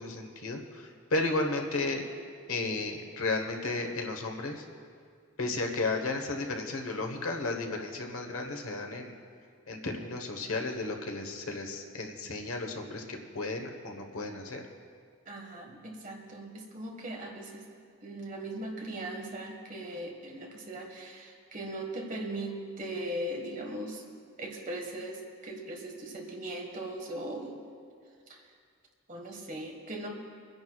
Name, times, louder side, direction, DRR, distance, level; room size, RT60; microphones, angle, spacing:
voice 1, 0.0-2.0 2.5-4.6 5.4-9.1 9.7-14.6, left 2 dB, 75° left, 3 dB, 1.2 m, -33 dB
voice 2, 15.2-17.6 18.0-24.0 24.4-27.5 28.3-28.4 29.1-30.1, right 1 dB, 35° right, 1 dB, 1.5 m, -39 dB
28.5 x 10.5 x 2.4 m, 2.2 s
head